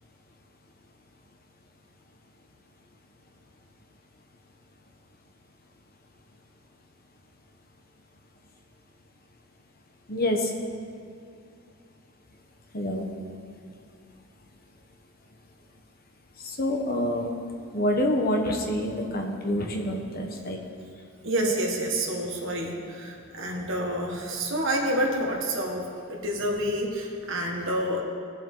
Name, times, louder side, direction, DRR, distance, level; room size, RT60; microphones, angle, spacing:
voice 1, 10.1-10.5 12.7-13.0 16.4-17.3 17.7-20.6 21.4-21.5, left 1 dB, 40° left, 2 dB, 1.2 m, -27 dB
voice 2, 21.2-28.0, right 1 dB, 60° right, 0 dB, 1.8 m, -28 dB
19.5 x 7.5 x 3.9 m, 2.3 s
head